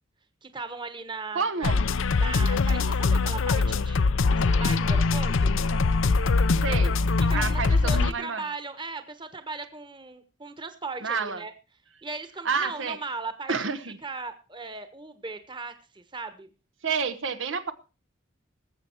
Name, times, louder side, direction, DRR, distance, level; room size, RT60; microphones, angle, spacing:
voice 1, 0.4-1.7 2.1-4.0 4.3-5.5 7.3-11.5 12.0-13.5 14.0-16.5, right 3 dB, 25° right, 10 dB, 1.2 m, -38 dB
voice 2, 1.3-1.8 6.6-6.9 7.3-8.4 11.0-11.4 12.4-13.0 13.5-14.0 16.8-17.7, right 5 dB, 75° right, 10 dB, 1.0 m, -29 dB
sound 1, 1.6-8.1, left 3 dB, 85° left, 0.6 m, -23 dB
19.5 x 7.7 x 4.5 m, 0.33 s
head